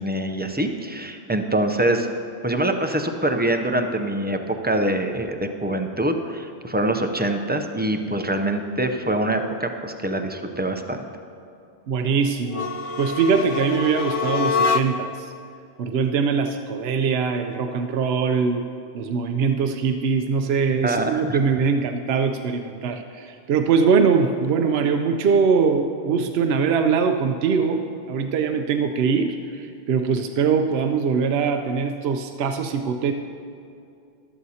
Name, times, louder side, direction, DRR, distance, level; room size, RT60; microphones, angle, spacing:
voice 1, 0.0-2.1 2.4-11.1 20.8-21.4, right 1 dB, 15° right, 5 dB, 0.4 m, -24 dB
voice 2, 11.9-12.7 13.0-15.3 15.8-18.6 18.9-33.1, right 5 dB, 75° right, 6 dB, 0.8 m, -22 dB
sound 1, 12.5-15.2, left 5 dB, 55° left, 0.4 m, -25 dB
14.0 x 12.5 x 2.8 m, 2.5 s
omnidirectional pair, 1.1 m